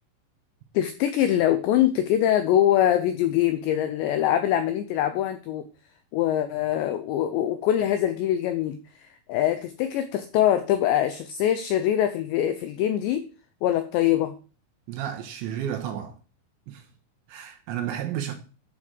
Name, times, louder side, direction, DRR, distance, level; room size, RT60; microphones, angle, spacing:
voice 1, 0.7-5.6 6.1-8.8 9.3-13.3 13.6-14.3, left 11 dB, 85° left, 2.5 m, -23 dB
voice 2, 14.9-16.1 16.7-16.8 17.3-18.3, right 10 dB, 75° right, 3.0 m, -32 dB
11.0 x 4.7 x 7.5 m
omnidirectional pair, 6.0 m